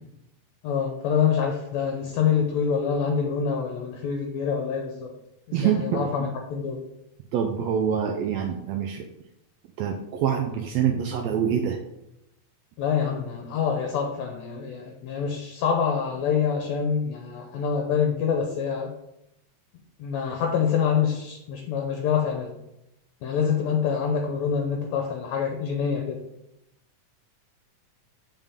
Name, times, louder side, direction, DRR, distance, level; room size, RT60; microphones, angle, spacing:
voice 1, 0.6-5.1 5.5-6.8 12.8-18.9 20.0-22.6 23.2-26.2, left 7 dB, 75° left, 2 dB, 1.7 m, -26 dB
voice 2, 5.5-6.0 7.3-9.1 9.8-11.8, right 8 dB, 85° right, 3 dB, 1.5 m, -25 dB
7.2 x 5.3 x 3.6 m, 0.85 s
omnidirectional pair, 3.7 m